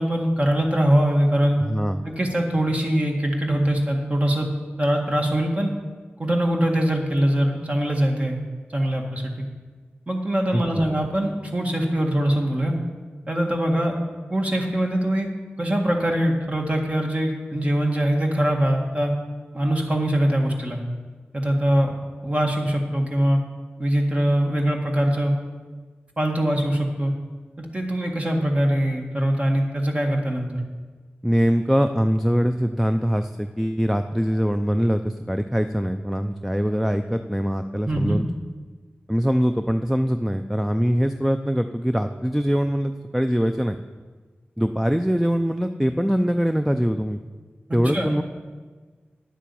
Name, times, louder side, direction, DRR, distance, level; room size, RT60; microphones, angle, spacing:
voice 1, 0.0-1.6 2.0-4.5 4.8-5.7 6.2-8.4 8.7-9.5 10.1-12.7 13.3-13.9 14.3-15.3 15.6-19.1 19.5-20.8 21.3-21.9 22.2-23.4 23.8-25.4 26.2-27.1 27.6-30.6 37.9-38.2 47.9-48.1, right 1 dB, 30° right, 1 dB, 1.8 m, -22 dB
voice 2, 1.6-2.0 10.5-10.6 31.2-38.3 39.1-43.8 44.6-47.2 47.7-48.2, equal, ahead, 7 dB, 0.5 m, -23 dB
10.0 x 7.4 x 7.0 m, 1.4 s
cardioid pair, 55°, 4 cm